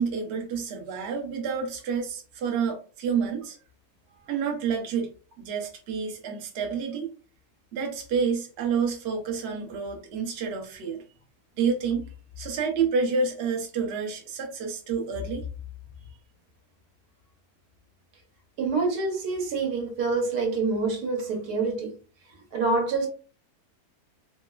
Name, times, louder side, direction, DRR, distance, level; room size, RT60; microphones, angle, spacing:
voice 1, 0.0-3.6 4.1-5.1 5.4-7.1 7.7-11.0 11.6-12.0 12.4-15.5, right 5 dB, 60° right, 0.7 m, -29 dB
voice 2, 18.6-21.9 22.5-23.1, right 3 dB, 80° right, 1.3 m, -26 dB
3.1 x 2.0 x 2.2 m
omnidirectional pair, 1.7 m